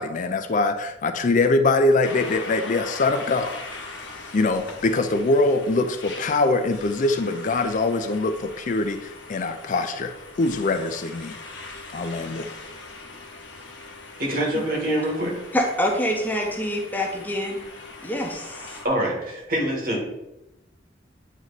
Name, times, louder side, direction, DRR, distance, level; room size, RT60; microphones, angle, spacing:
voice 1, 0.0-3.6 4.3-10.1 10.4-11.4 11.9-12.5, left 2 dB, 40° left, 8 dB, 0.4 m, -23 dB
sound 1, 2.0-18.9, left 3 dB, 65° left, 1.1 m, -41 dB
voice 2, 14.2-15.4 18.8-20.1, right 1 dB, 50° right, -1 dB, 1.8 m, -25 dB
voice 3, 15.5-17.6 18.0-18.8, left 1 dB, 10° left, 0 dB, 0.7 m, -26 dB
9.0 x 3.1 x 4.0 m, 0.92 s
head